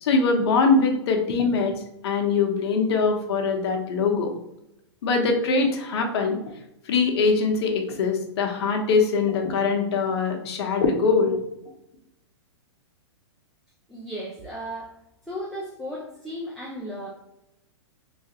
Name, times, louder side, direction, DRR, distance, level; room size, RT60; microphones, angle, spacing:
voice 1, 0.0-1.7 2.0-4.3 5.0-6.4 6.9-11.4, left 4 dB, 60° left, 3 dB, 0.7 m, -22 dB
voice 2, 13.9-15.0 15.3-17.1, equal, ahead, -6 dB, 0.3 m, -35 dB
3.1 x 2.3 x 2.8 m, 0.84 s
hypercardioid pair, 145°, 15 cm